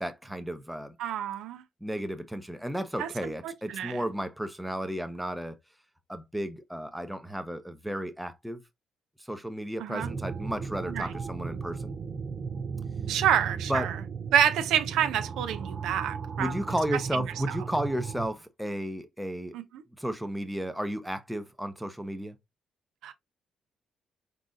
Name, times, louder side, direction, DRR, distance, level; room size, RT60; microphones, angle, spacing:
voice 1, 0.0-1.0 1.8-5.6 6.1-8.6 9.3-11.9 13.7-13.9 16.4-19.6 20.0-22.4, equal, 5° right, 0.7 m, -33 dB
voice 2, 1.0-1.6 3.0-4.0 9.8-10.1 10.9-11.1 13.1-14.0 14.3-16.6 17.5-17.6 19.5-19.8 23.0-23.1, right 10 dB, 90° right, 0.6 m, -28 dB
sound 1, 10.0-18.3, right 5 dB, 45° right, 0.6 m, -36 dB
4.0 x 3.8 x 2.5 m
cardioid pair, 90°, 0 cm